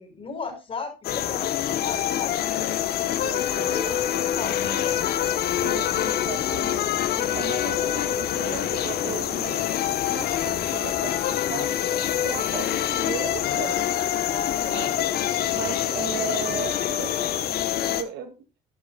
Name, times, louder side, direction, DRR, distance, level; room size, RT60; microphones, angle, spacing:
voice 1, 0.0-2.5 3.7-5.1 7.1-7.6 14.3-14.9, left 4 dB, 35° left, 5 dB, 6.2 m, -36 dB
sound 1, 1.0-18.0, left 11 dB, 65° left, 1.3 m, -25 dB
voice 2, 3.1-3.8 5.6-6.9 7.2-11.7 12.1-13.9 14.7-15.0 15.5-18.4, right 9 dB, 80° right, 5 dB, 2.6 m, -36 dB
13.0 x 12.0 x 2.4 m, 0.30 s
cardioid pair, 110°, 17 cm